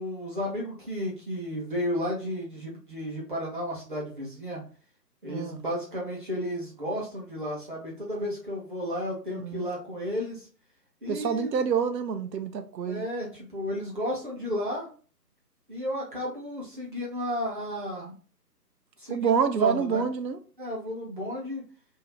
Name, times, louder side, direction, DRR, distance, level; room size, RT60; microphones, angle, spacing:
voice 1, 0.0-4.6 5.2-10.5 11.0-11.5 12.9-14.9 15.7-18.1 19.0-20.1 20.6-21.6, left 1 dB, 30° right, 0.7 m, -33 dB
voice 2, 5.3-5.6 9.3-9.7 11.1-13.1 19.1-20.4, right 6 dB, 85° right, 0.7 m, -27 dB
2.7 x 2.5 x 3.1 m
figure-of-eight pair, 160°, 49 cm